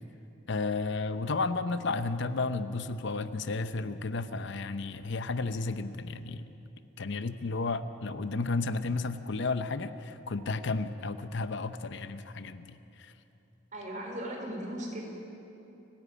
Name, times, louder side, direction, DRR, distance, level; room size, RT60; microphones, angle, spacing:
voice 1, 0.5-6.5 7.0-13.1, left 3 dB, 65° left, 11 dB, 0.7 m, -33 dB
voice 2, 13.7-15.0, right 1 dB, 40° right, 0 dB, 4.1 m, -37 dB
29.5 x 10.5 x 8.5 m, 2.9 s
head